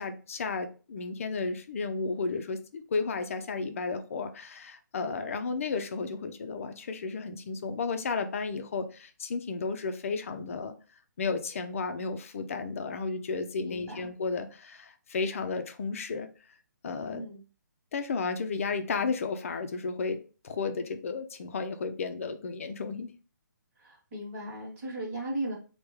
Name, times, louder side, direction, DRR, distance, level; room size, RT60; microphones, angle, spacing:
voice 1, 0.0-10.7 11.2-16.3 16.8-17.3 17.9-20.2 20.4-23.1, left 4 dB, 45° left, 8 dB, 0.5 m, -33 dB
voice 2, 13.6-14.1 17.1-17.4 23.7-25.5, right 1 dB, 35° right, -6 dB, 1.2 m, -37 dB
3.3 x 2.2 x 3.1 m, 0.36 s
hypercardioid pair, 170°, 11 cm